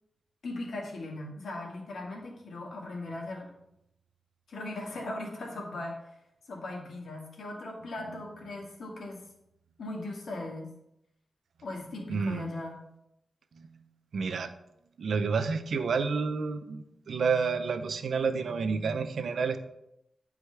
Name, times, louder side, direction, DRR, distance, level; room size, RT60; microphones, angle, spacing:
voice 1, 0.4-3.5 4.5-6.2 6.5-9.2 9.8-10.7 11.6-12.8, left 2 dB, 85° left, -1 dB, 1.8 m, -38 dB
voice 2, 12.1-12.5 13.6-13.7 14.1-14.5 15.0-19.6, right 5 dB, 85° right, 10 dB, 0.5 m, -29 dB
9.6 x 4.8 x 3.4 m, 0.82 s
cardioid pair, 70°, 0 cm